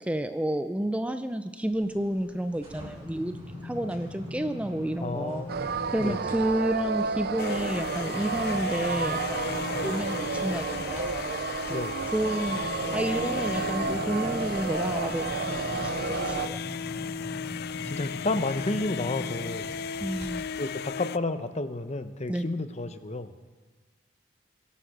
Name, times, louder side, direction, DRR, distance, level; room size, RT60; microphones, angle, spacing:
voice 1, 0.0-3.4 3.6-5.5 5.9-11.9 12.1-12.6 12.9-16.6 20.0-20.5 22.3-22.5, right 1 dB, 5° right, 9 dB, 0.5 m, -30 dB
sound 1, 1.7-6.4 6.8-20.3 20.7-20.9, left 2 dB, 35° right, 6.2 m, -41 dB
voice 2, 5.0-5.7 6.0-6.2 11.7-12.1 15.7-16.2 17.8-19.8 20.6-23.3, left 2 dB, 40° left, 10 dB, 0.9 m, -32 dB
sound 2, 5.5-16.5, right 5 dB, 60° right, 0.6 m, -31 dB
sound 3, 7.4-21.2, left 7 dB, 60° left, 0.4 m, -36 dB
23.0 x 10.0 x 6.0 m, 1.4 s
head